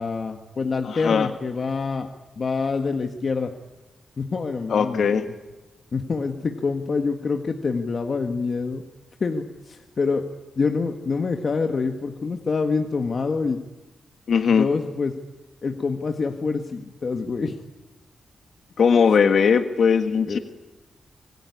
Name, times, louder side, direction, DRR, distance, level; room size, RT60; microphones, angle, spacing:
voice 1, 0.0-2.1 2.4-3.5 4.2-5.0 5.9-8.8 9.2-10.3 10.6-13.6 14.5-15.1 15.6-17.6 20.2-20.4, left 4 dB, 40° left, 5 dB, 1.7 m, -26 dB
voice 2, 0.8-1.3 4.7-5.3 14.3-14.7 18.8-20.4, left 6 dB, 65° left, 7 dB, 1.6 m, -19 dB
26.5 x 22.5 x 9.8 m, 1.1 s
wide cardioid pair, 170°, 0 cm